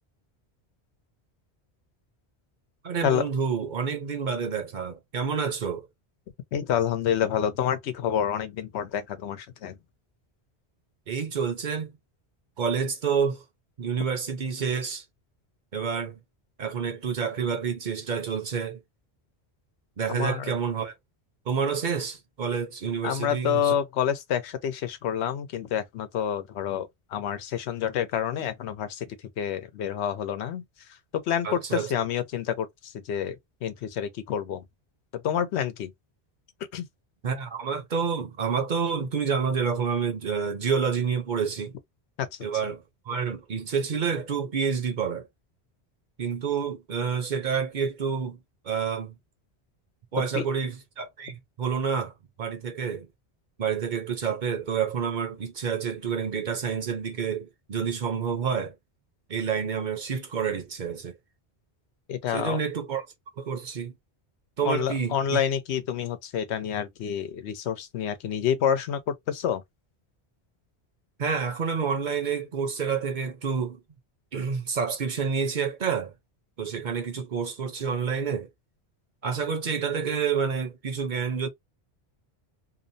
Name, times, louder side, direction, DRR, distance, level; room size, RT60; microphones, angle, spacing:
voice 1, 2.8-5.8 11.1-11.9 12.6-13.4 13.8-15.0 15.7-16.2 16.6-18.8 20.0-20.9 21.5-23.7 31.4-31.9 37.2-41.7 42.4-45.3 46.2-48.4 48.6-49.1 50.1-52.1 52.4-53.1 53.6-58.7 59.3-61.2 62.3-63.1 63.4-63.9 64.6-65.4 71.2-73.8 74.3-76.1 76.6-78.5 79.2-81.5, right 6 dB, 50° right, 0.7 m, -28 dB
voice 2, 6.5-9.8 20.1-20.5 23.0-30.6 31.1-33.4 33.6-34.6 35.1-35.9 36.7-36.9 42.2-42.4 50.3-50.4 62.1-62.6 64.6-69.6, left 9 dB, 85° left, 0.9 m, -28 dB
2.7 x 2.0 x 2.6 m
omnidirectional pair, 1.1 m